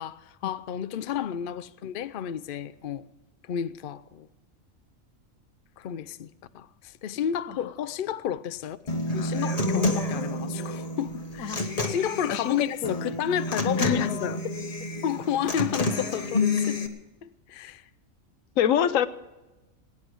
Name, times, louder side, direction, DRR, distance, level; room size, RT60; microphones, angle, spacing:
voice 1, 0.0-3.0 3.5-4.3 5.8-6.3 6.5-8.8 9.1-14.4 15.0-16.8 17.2-17.8, left 9 dB, 55° left, 0.6 m, -31 dB
Human voice / Acoustic guitar, 8.9-16.9, left 2 dB, 30° left, 1.2 m, -29 dB
voice 2, 12.3-13.0 13.8-14.1 18.6-19.1, left 9 dB, 80° left, 1.1 m, -25 dB
19.0 x 9.8 x 6.1 m
omnidirectional pair, 1.4 m